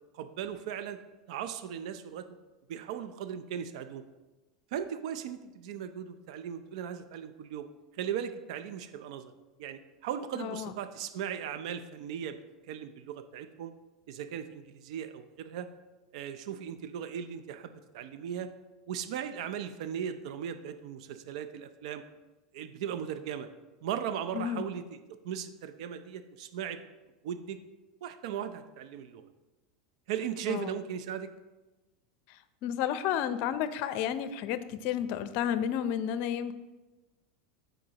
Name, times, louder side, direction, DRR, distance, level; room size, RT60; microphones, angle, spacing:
voice 1, 0.1-1.0 1.3-2.3 2.7-4.0 4.7-7.7 7.9-9.3 9.6-12.4 12.6-13.7 14.1-15.7 16.1-18.5 18.9-22.0 22.5-23.5 23.8-26.8 27.2-27.6 28.0-29.2 30.1-31.3, right 9 dB, 70° right, 9 dB, 0.6 m, -37 dB
voice 2, 10.4-10.7 24.3-24.6 30.5-30.7 32.6-36.5, left 9 dB, 55° left, 12 dB, 0.6 m, -31 dB
14.5 x 5.1 x 2.9 m, 1.1 s
hypercardioid pair, 105°, 4 cm